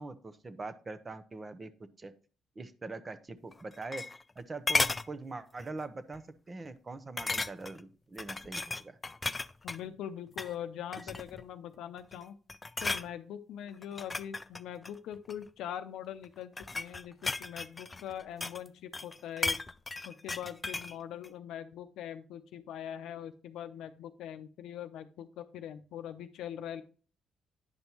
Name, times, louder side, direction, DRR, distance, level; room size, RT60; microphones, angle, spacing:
voice 1, 0.0-1.7 2.0-2.1 2.6-4.1 4.4-9.0, right 3 dB, 30° right, 12 dB, 0.7 m, -43 dB
sound 1, 3.5-4.4 4.7-5.1 5.6-5.8 6.1-6.2 7.2-7.8 8.2-9.8 10.3-10.5 10.9-11.4 12.0-12.2 12.5-13.1 13.8-15.4 16.2-18.7 18.9-20.9 21.2-21.3, left 3 dB, 25° left, 0.3 m, -34 dB
voice 2, 9.6-12.4 12.8-19.6 20.0-26.8, left 10 dB, 85° left, 9 dB, 0.6 m, -42 dB
9.7 x 5.3 x 3.0 m, 0.39 s
cardioid pair, 90°, 0 cm